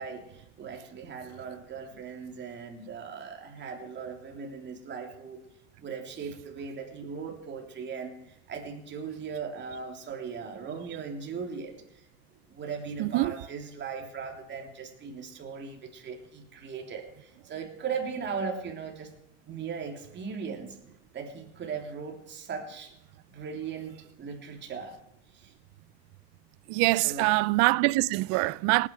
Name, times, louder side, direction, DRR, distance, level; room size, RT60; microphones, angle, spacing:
voice 1, 0.0-5.4 5.8-12.0 12.5-19.1 19.5-20.8 21.1-22.9 23.3-24.9 25.3-25.5 26.9-27.3, right 5 dB, 35° right, 3.3 m, -38 dB
voice 2, 13.0-13.3 26.7-28.9, right 22 dB, 70° right, 0.5 m, -24 dB
19.0 x 9.9 x 4.7 m
supercardioid pair, 115°, 30 cm